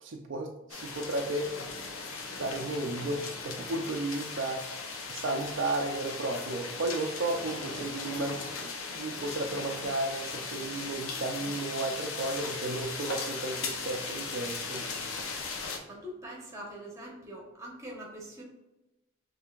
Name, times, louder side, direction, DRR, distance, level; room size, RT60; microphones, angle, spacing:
voice 1, 0.0-1.7 2.4-15.1, right 2 dB, 60° right, 3 dB, 0.4 m, -34 dB
sound 1, 0.7-15.8, left 4 dB, 85° left, 0.7 m, -38 dB
voice 2, 15.9-18.4, equal, 15° right, -2 dB, 1.0 m, -43 dB
5.6 x 3.3 x 2.4 m, 1.0 s
head